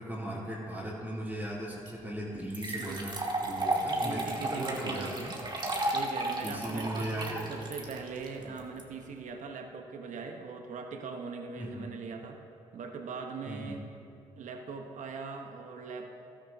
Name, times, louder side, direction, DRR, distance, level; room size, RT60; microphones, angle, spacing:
voice 1, 0.0-5.3 6.4-7.5 8.4-8.5 11.6-11.9 13.5-13.8, right 1 dB, 10° right, -9 dB, 3.1 m, -38 dB
sound 1, 1.9-2.0 2.5-8.8, right 2 dB, 30° right, 1.9 m, -33 dB
voice 2, 4.0-5.3 5.9-12.4 12.7-13.9 14.4-16.1, right 5 dB, 60° right, 4 dB, 1.1 m, -40 dB
15.5 x 13.0 x 2.8 m, 2.7 s
hypercardioid pair, 55°, 14 cm